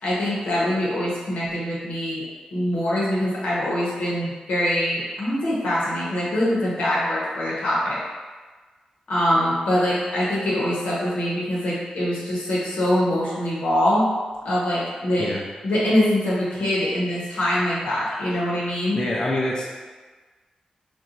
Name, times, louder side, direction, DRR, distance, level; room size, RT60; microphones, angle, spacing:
voice 1, 0.0-2.2 2.5-8.0 9.1-14.0 14.4-15.3 15.6-19.0, left 1 dB, 85° left, -7 dB, 0.8 m, -23 dB
voice 2, 18.9-19.6, left 1 dB, 30° left, -4 dB, 0.4 m, -25 dB
2.8 x 2.2 x 2.5 m, 1.4 s
cardioid pair, 60°, 2 cm